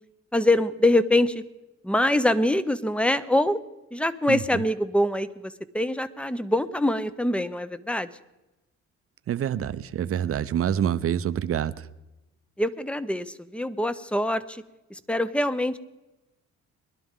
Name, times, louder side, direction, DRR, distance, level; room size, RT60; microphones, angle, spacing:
voice 1, 0.3-1.4 1.8-3.6 3.9-8.1 12.6-14.6 14.9-15.8, left 1 dB, 5° left, 14 dB, 0.7 m, -24 dB
voice 2, 4.3-4.6 9.3-11.9, right 9 dB, 50° right, 14 dB, 0.6 m, -27 dB
21.5 x 11.5 x 3.7 m, 0.99 s
cardioid pair, 90°, 30 cm